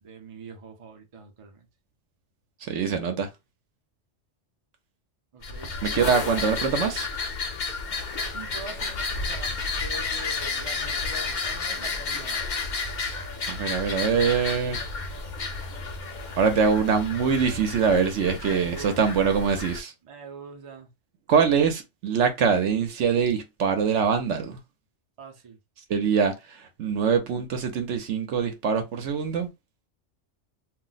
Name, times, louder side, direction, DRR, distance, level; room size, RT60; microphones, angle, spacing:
voice 1, 0.0-1.6 5.3-6.5 8.3-12.4 18.4-19.4 20.0-20.9 25.2-25.6, right 4 dB, 35° right, 0.6 m, -43 dB
voice 2, 2.6-3.3 5.8-7.1 13.5-14.8 16.4-19.9 21.3-24.6 25.9-29.5, right 6 dB, 70° right, 1.0 m, -24 dB
sound 1, 5.4-19.8, left 4 dB, 50° left, 0.6 m, -31 dB
2.5 x 2.1 x 3.9 m
omnidirectional pair, 1.3 m